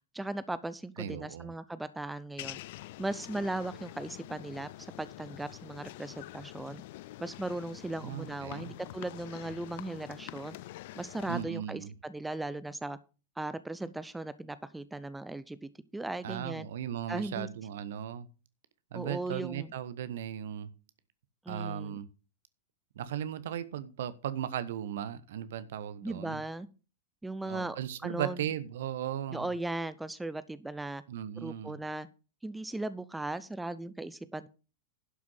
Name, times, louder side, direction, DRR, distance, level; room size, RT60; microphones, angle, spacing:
voice 1, 0.1-2.6 3.0-6.8 7.2-10.6 11.0-13.0 13.4-16.7 17.1-17.5 18.9-19.7 21.5-22.0 26.0-26.7 27.2-27.8 28.0-28.4 29.3-31.0 31.4-32.1 32.4-34.5, right 2 dB, 5° right, 15 dB, 0.7 m, -37 dB
voice 2, 1.0-1.5 8.0-8.7 11.3-11.9 16.2-18.3 18.9-20.7 21.5-22.1 23.0-26.4 27.4-29.5 31.1-31.8, right 10 dB, 60° right, 14 dB, 1.0 m, -37 dB
sound 1, 2.4-11.4, left 17 dB, 50° left, 0.4 m, -46 dB
11.5 x 6.1 x 5.6 m, 0.33 s
figure-of-eight pair, 90°, 0 cm